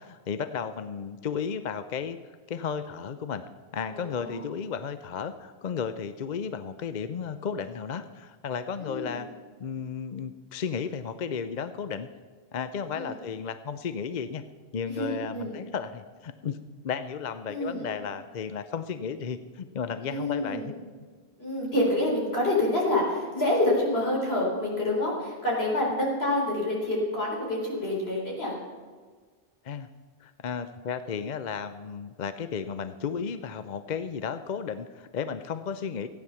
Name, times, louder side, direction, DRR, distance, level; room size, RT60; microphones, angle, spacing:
voice 1, 0.0-2.2 2.5-3.4 3.7-9.3 9.6-12.1 12.5-14.4 14.7-16.6 16.8-20.7 29.6-29.9 30.2-36.1, left 6 dB, 50° left, 11 dB, 0.6 m, -34 dB
voice 2, 3.9-4.5 8.8-9.2 12.9-13.2 14.9-15.5 17.5-17.9 20.0-20.7 21.4-28.5, left 1 dB, 70° left, -3 dB, 4.3 m, -27 dB
14.5 x 9.4 x 6.9 m, 1.5 s
omnidirectional pair, 1.1 m